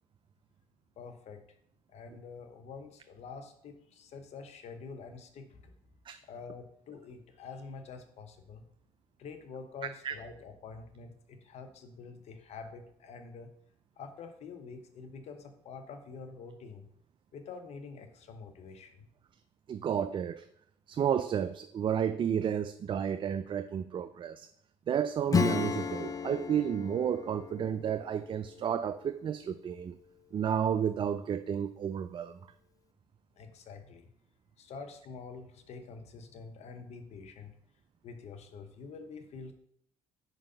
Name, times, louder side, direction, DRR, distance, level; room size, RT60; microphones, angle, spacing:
voice 1, 1.0-1.4 1.9-5.7 6.2-8.6 9.2-13.5 14.0-16.9 17.3-19.1 33.4-34.1 34.6-37.5 38.0-39.5, left 4 dB, 65° left, 0.9 m, -47 dB
voice 2, 19.7-20.5 20.9-24.5 24.9-30.0 30.3-32.4, right 8 dB, 45° right, 0.3 m, -31 dB
Acoustic guitar / Strum, 25.3-29.6, left 6 dB, 30° left, 0.4 m, -34 dB
4.8 x 4.0 x 5.4 m
supercardioid pair, 60°, 12 cm